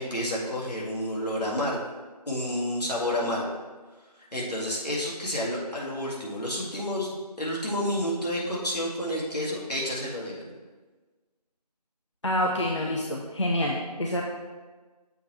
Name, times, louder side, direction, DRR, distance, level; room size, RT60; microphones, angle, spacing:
voice 1, 0.0-1.8 2.3-3.5 4.2-10.5, left 1 dB, 75° left, -4 dB, 1.9 m, -30 dB
voice 2, 12.2-14.2, left 1 dB, 45° left, -1 dB, 0.5 m, -27 dB
7.0 x 3.0 x 4.5 m, 1.3 s
figure-of-eight pair, 170°, 21 cm